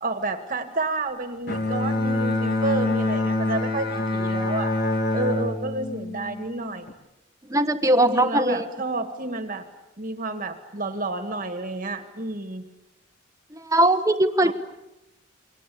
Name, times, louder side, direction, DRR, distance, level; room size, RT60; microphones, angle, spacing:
voice 1, 0.0-4.7 5.1-6.9 8.0-9.6 10.0-12.6 14.4-14.5, right 2 dB, 40° right, 8 dB, 1.8 m, -30 dB
Bowed string instrument, 1.5-6.9, left 2 dB, 50° left, 2.0 m, -25 dB
voice 2, 7.5-8.6 13.6-14.5, right 1 dB, 15° right, 9 dB, 1.3 m, -20 dB
29.0 x 23.5 x 8.6 m, 0.92 s
head